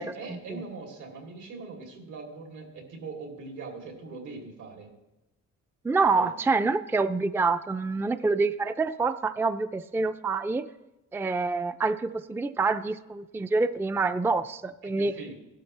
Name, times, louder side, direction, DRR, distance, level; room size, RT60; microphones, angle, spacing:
voice 1, 0.0-4.9 6.1-6.3 14.8-15.4, right 3 dB, 80° right, 0 dB, 3.2 m, -41 dB
voice 2, 5.8-10.7 11.1-15.1, right 3 dB, 10° right, 11 dB, 0.4 m, -26 dB
16.5 x 12.5 x 3.3 m, 0.97 s
cardioid pair, 90°, 30 cm